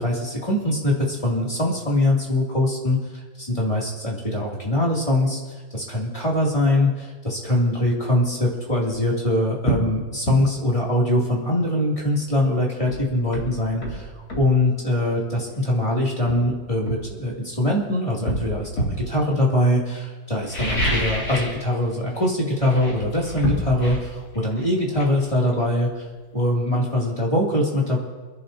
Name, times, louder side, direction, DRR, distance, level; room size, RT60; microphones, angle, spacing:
voice 1, 0.0-3.0 3.4-5.4 5.7-14.1 14.3-26.0 26.3-28.0, left 1 dB, 15° left, -4 dB, 2.8 m, -22 dB
sound 1, 8.9-9.0 9.6-9.9 10.3-10.4 12.3-12.4 12.9-14.5 15.6-15.7 16.3-17.7 18.3-19.1 20.4-21.6 21.9-22.3 22.6-26.1 26.4-26.5, equal, 50° left, 3.4 m, -28 dB
28.5 x 11.0 x 2.8 m, 1.3 s
omnidirectional pair, 2.1 m